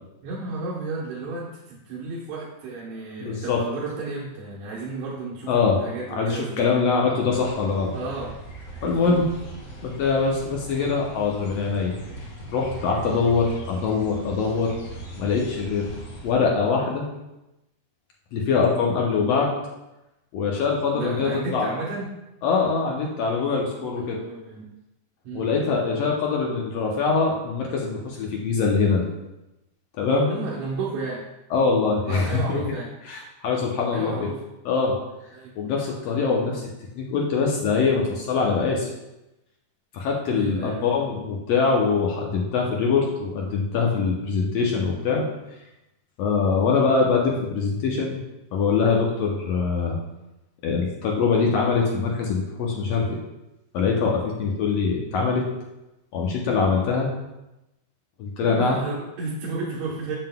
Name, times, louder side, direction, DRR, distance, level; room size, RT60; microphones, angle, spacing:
voice 1, 0.2-6.8 7.9-8.4 8.8-9.2 20.9-22.1 24.0-24.7 25.2-25.5 30.3-31.2 32.1-32.9 33.9-34.4 35.3-35.5 40.3-41.0 58.4-60.2, right 3 dB, 70° right, -7 dB, 2.3 m, -33 dB
voice 2, 3.2-3.6 5.5-5.8 6.1-7.9 8.8-9.2 9.8-11.9 12.5-14.7 15.2-15.9 16.2-17.1 18.3-19.5 20.3-21.7 22.4-24.2 25.3-29.0 30.0-30.3 31.5-32.6 33.1-34.3 34.6-34.9 35.6-36.7 36.9-38.9 39.9-45.2 46.2-48.2 48.5-50.0 50.6-53.2 53.7-55.4 56.1-57.1 58.2-58.8, left 5 dB, 75° left, -1 dB, 1.7 m, -23 dB
sound 1, 7.3-16.3, right 2 dB, 35° left, 1.9 m, -40 dB
7.5 x 7.2 x 2.2 m, 0.95 s
omnidirectional pair, 3.5 m